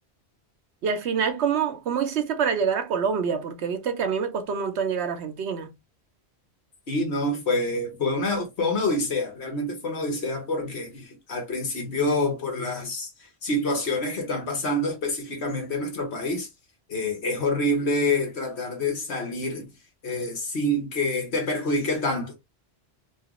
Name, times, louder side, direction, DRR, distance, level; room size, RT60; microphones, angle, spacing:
voice 1, 0.8-5.7, right 6 dB, 85° right, 1.0 m, -26 dB
voice 2, 6.9-16.5 16.9-19.7 20.0-22.4, left 1 dB, 80° left, 1.4 m, -27 dB
3.0 x 2.4 x 3.0 m
omnidirectional pair, 1.1 m